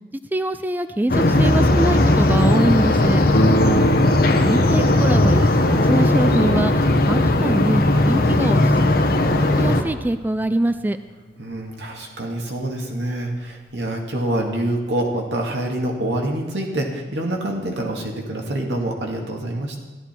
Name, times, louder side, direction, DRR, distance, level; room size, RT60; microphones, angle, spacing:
voice 1, 0.3-3.2 4.5-9.0 9.6-11.0, right 1 dB, 10° right, 11 dB, 0.3 m, -24 dB
sound 1, 1.1-9.8, left 1 dB, 60° left, 1.0 m, -17 dB
Harp, 3.3-12.5 13.4-13.5 13.9-14.0, right 1 dB, 90° left, 1.1 m, -28 dB
voice 2, 3.6-4.0 11.4-19.8, right 1 dB, 85° right, 0 dB, 2.1 m, -26 dB
14.0 x 11.5 x 4.5 m, 1.3 s
head